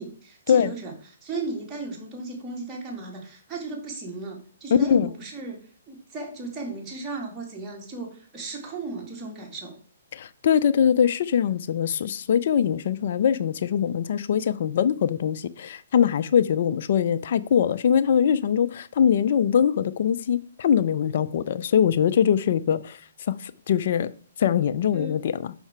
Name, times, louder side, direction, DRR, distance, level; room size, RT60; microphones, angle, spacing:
voice 1, 0.0-5.6 5.9-9.8 24.9-25.2, right 3 dB, 15° right, 2.2 m, -35 dB
voice 2, 4.7-5.1 10.1-23.0 23.3-24.1 24.4-25.5, left 8 dB, 55° left, 0.4 m, -22 dB
5.8 x 5.7 x 4.4 m
hypercardioid pair, 140°, 0 cm